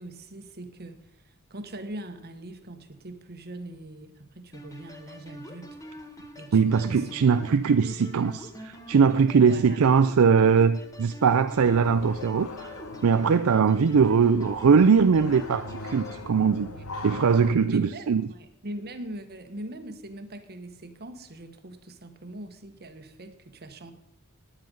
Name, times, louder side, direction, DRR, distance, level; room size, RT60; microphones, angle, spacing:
voice 1, 0.0-5.8 6.4-7.2 9.3-9.8 16.7-16.9 17.7-23.9, right 1 dB, 45° right, 1.4 m, -41 dB
sound 1, 4.5-16.2, equal, 15° left, 1.7 m, -45 dB
voice 2, 6.5-12.7 13.0-16.7 17.0-18.2, right 6 dB, 65° right, 0.4 m, -21 dB
sound 2, 11.6-17.5, left 2 dB, 70° left, 1.2 m, -40 dB
9.8 x 9.2 x 7.7 m
head